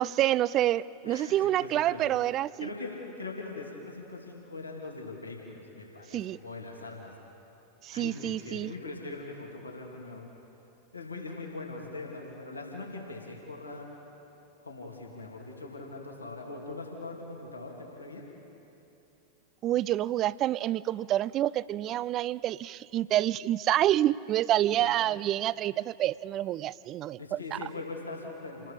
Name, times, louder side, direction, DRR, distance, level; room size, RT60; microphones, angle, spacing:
voice 1, 0.0-2.7 6.1-6.4 7.8-8.7 19.6-27.6, right 13 dB, 35° right, 21 dB, 0.4 m, -28 dB
voice 2, 1.0-2.0 2.6-7.1 7.9-10.3 10.9-13.9 14.6-18.2 24.8-24.9 27.2-28.7, left 3 dB, 80° left, -1 dB, 3.0 m, -41 dB
29.0 x 19.5 x 5.1 m, 2.9 s
figure-of-eight pair, 90°, 0 cm